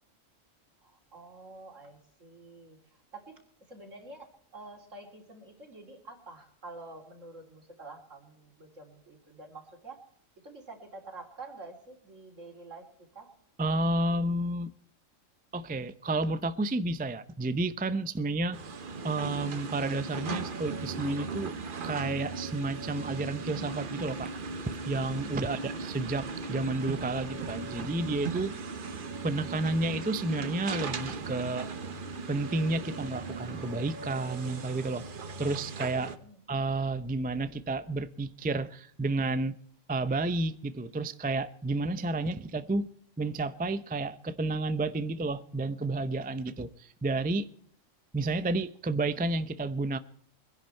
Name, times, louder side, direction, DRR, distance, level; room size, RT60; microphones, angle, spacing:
voice 1, 0.8-10.1 10.4-13.4 36.1-36.4, right 2 dB, 70° right, 3.5 m, -48 dB
voice 2, 13.6-14.7 15.5-18.6 19.0-21.5 21.8-24.3 24.6-28.5 29.2-31.7 32.3-35.0 35.4-36.1 36.5-39.6 39.9-42.9 43.2-47.5 48.1-50.0, right 2 dB, 15° right, 0.3 m, -31 dB
sound 1, 18.5-36.2, right 4 dB, 45° right, 1.0 m, -38 dB
23.0 x 11.0 x 4.4 m
omnidirectional pair, 1.4 m